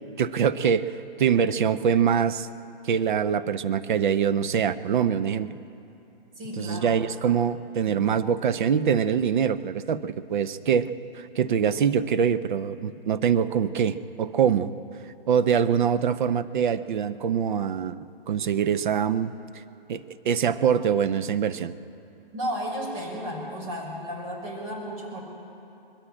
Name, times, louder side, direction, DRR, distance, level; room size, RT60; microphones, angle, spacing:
voice 1, 0.2-2.5 2.8-5.5 6.6-10.9 11.1-14.7 15.3-18.0 18.3-19.3 19.9-21.7, right 7 dB, 55° right, 13 dB, 0.8 m, -24 dB
voice 2, 6.4-6.9 22.3-25.2, equal, 35° right, -1 dB, 5.5 m, -33 dB
21.0 x 14.5 x 8.9 m, 2.8 s
hypercardioid pair, 150°, 30 cm